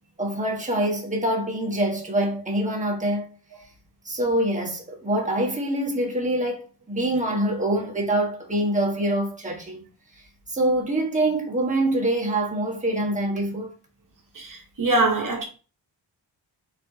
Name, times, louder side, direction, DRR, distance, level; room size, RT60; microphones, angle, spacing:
voice 1, 0.2-3.3 4.0-9.8 10.5-13.7, right 1 dB, 15° right, 1.2 m, -25 dB
voice 2, 14.4-15.4, right 2 dB, 45° right, 1.1 m, -23 dB
4.4 x 4.3 x 2.6 m
wide cardioid pair, 145°, 44 cm